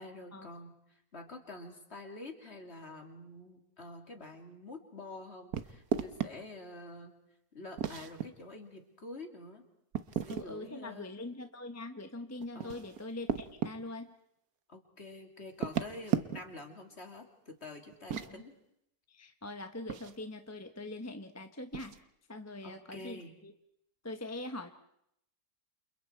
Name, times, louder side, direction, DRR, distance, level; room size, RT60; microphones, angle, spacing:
voice 1, 0.0-7.1 7.5-9.6 10.1-11.1 12.5-12.9 14.7-18.5 22.6-23.3, left 2 dB, 40° left, 3 dB, 3.1 m, -47 dB
sound 1, 5.5-6.3 7.8-8.3 9.9-10.5 12.4-13.8 15.5-16.6 17.9-18.3 19.9-20.2 21.7-22.0, right 8 dB, 65° right, 1.5 m, -35 dB
voice 2, 10.3-14.1 18.1-18.4 19.1-22.0 22.3-23.5 24.0-24.7, left 2 dB, 10° left, 7 dB, 1.0 m, -43 dB
30.0 x 28.0 x 4.6 m, 0.76 s
omnidirectional pair, 1.7 m